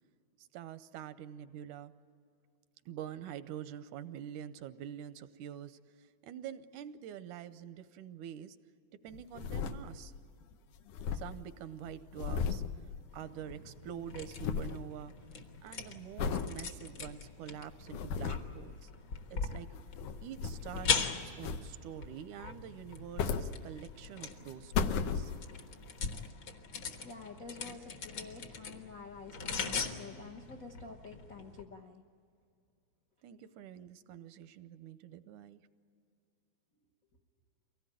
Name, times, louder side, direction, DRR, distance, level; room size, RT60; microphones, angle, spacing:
voice 1, 0.4-1.9 2.9-8.6 9.0-10.1 11.1-12.6 13.1-15.1 15.6-18.9 19.3-19.7 20.2-25.3 33.2-35.6, right 10 dB, 85° right, 12 dB, 2.2 m, -46 dB
sound 1, 9.1-10.3 10.5-10.6 10.8-13.6 13.8-14.8 15.3-15.6 16.2-16.5 17.1-17.2 17.7-18.6 19.6-21.0 21.4-22.0 22.8-24.1 24.5-25.7 26.3-26.4, left 6 dB, 85° left, 2.4 m, -36 dB
sound 2, 13.1-31.6, left 5 dB, 50° left, 1.8 m, -41 dB
voice 2, 27.0-32.0, left 4 dB, 70° left, 1 dB, 0.8 m, -49 dB
24.0 x 17.5 x 9.0 m, 2.4 s
omnidirectional pair, 3.4 m